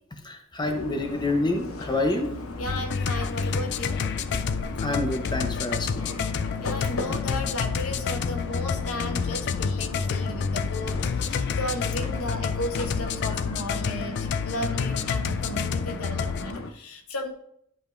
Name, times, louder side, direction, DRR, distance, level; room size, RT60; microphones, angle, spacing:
voice 1, 0.2-2.3 4.8-6.2, left 2 dB, 20° left, 4 dB, 0.8 m, -27 dB
sound 1, 0.6-16.7, left 2 dB, 70° left, 0.8 m, -37 dB
voice 2, 2.6-4.0 6.6-17.3, left 1 dB, 90° left, 5 dB, 1.1 m, -34 dB
sound 2, 2.7-16.5, left 6 dB, 50° left, 0.3 m, -29 dB
10.5 x 5.1 x 2.6 m, 0.70 s
head